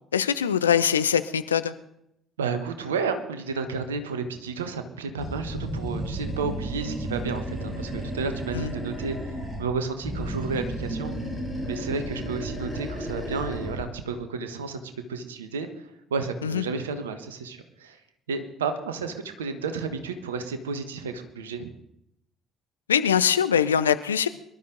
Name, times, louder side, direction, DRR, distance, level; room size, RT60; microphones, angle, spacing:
voice 1, 0.1-1.7 8.5-8.7 16.4-16.6 22.9-24.3, left 8 dB, 80° left, 12 dB, 0.6 m, -22 dB
voice 2, 2.4-11.1 11.7-15.7 16.1-18.0 18.3-21.7, right 4 dB, 80° right, 9 dB, 1.3 m, -32 dB
Animal, 5.2-9.7 10.0-13.9, right 1 dB, 5° right, 6.2 m, -33 dB
23.5 x 12.0 x 3.9 m, 0.79 s
figure-of-eight pair, 50°, 0 cm